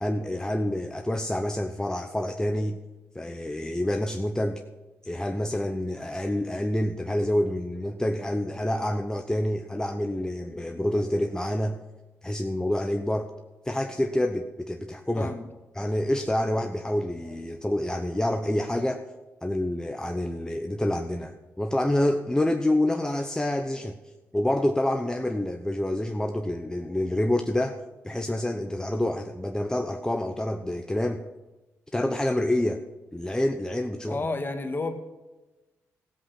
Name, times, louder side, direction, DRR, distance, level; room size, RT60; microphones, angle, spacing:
voice 1, 0.0-2.8 3.1-4.6 5.0-11.8 12.2-13.3 13.6-15.3 15.8-19.0 19.4-23.9 24.3-27.8 28.0-31.2 31.9-32.8 33.1-34.2, left 1 dB, 10° left, 5 dB, 0.9 m, -27 dB
voice 2, 15.2-15.5 34.1-34.9, left 3 dB, 35° left, 6 dB, 1.8 m, -30 dB
14.5 x 8.0 x 5.8 m, 1.1 s
supercardioid pair, 50°, 6 cm